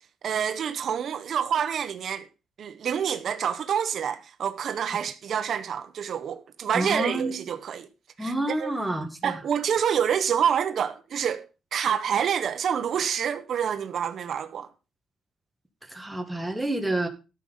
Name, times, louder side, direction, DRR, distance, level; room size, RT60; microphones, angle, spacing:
voice 1, 0.2-2.2 2.6-7.9 8.2-8.7 9.2-11.5 11.7-14.7, right 8 dB, 60° right, 1.1 m, -27 dB
voice 2, 6.7-7.4 8.2-9.4 15.9-17.1, right 1 dB, 5° right, 2.0 m, -29 dB
13.0 x 6.5 x 5.6 m
cardioid pair, 125°, 0 cm